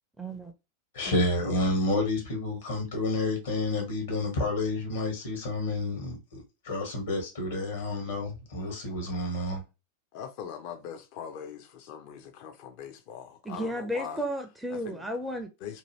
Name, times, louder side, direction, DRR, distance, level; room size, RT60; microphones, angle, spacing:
voice 1, 0.2-0.5 13.4-15.5, equal, 5° right, 0.5 m, -33 dB
voice 2, 0.9-9.6, left 2 dB, 60° left, 1.4 m, -30 dB
voice 3, 10.1-14.2 14.7-15.1 15.6-15.8, left 8 dB, 45° left, 0.6 m, -41 dB
2.7 x 2.5 x 3.1 m
figure-of-eight pair, 90°, 0 cm